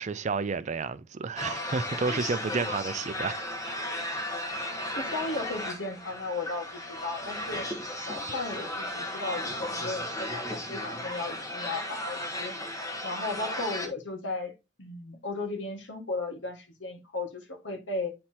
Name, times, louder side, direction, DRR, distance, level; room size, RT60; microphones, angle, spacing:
voice 1, 0.0-3.4, right 4 dB, 40° right, 0.5 m, -31 dB
sound 1, 1.4-13.9, left 1 dB, 20° left, 1.2 m, -35 dB
voice 2, 4.9-7.6 8.1-12.5 13.0-14.5 14.8-18.1, left 2 dB, 75° left, 1.8 m, -35 dB
9.6 x 4.2 x 2.9 m
head